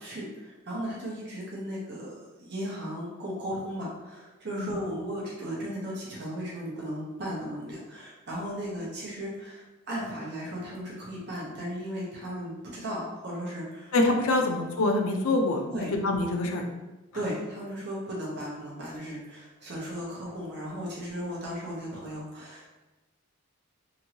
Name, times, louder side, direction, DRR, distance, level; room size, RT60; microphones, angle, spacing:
voice 1, 0.0-13.9 15.7-15.9 17.1-22.7, equal, 50° right, -5 dB, 0.7 m, -36 dB
voice 2, 13.9-15.6 15.9-16.7, left 2 dB, 80° left, 3 dB, 0.5 m, -25 dB
2.9 x 2.6 x 2.7 m, 1.1 s
head